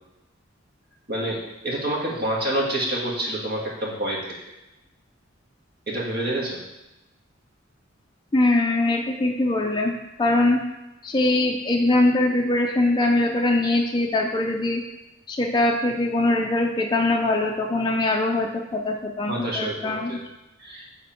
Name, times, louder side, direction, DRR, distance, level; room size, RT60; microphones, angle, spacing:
voice 1, 1.1-4.4 5.9-6.6 19.3-20.2 20.6-20.9, right 1 dB, 55° right, -4 dB, 1.6 m, -27 dB
voice 2, 8.3-10.6 11.0-14.8 15.3-20.2, left 2 dB, 25° left, 1 dB, 0.4 m, -22 dB
7.2 x 3.6 x 4.4 m, 0.98 s
head